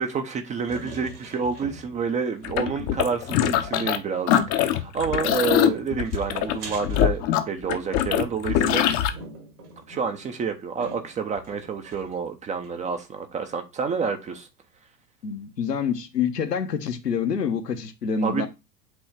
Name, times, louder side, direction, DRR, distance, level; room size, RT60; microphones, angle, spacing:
voice 1, 0.0-8.9 9.9-14.5 18.2-18.5, right 5 dB, 15° right, 0.6 m, -29 dB
sound 1, 0.7-2.1 2.4-2.5 2.8-4.1 5.1-7.8 8.2-12.3 12.6-12.7 13.0-13.1, right 2 dB, 70° right, 2.4 m, -44 dB
sound 2, 2.4-4.0 4.3-9.1, left 11 dB, 35° left, 0.8 m, -23 dB
voice 2, 15.2-18.5, left 6 dB, 75° left, 1.2 m, -27 dB
8.2 x 3.1 x 4.6 m
figure-of-eight pair, 85°, 48 cm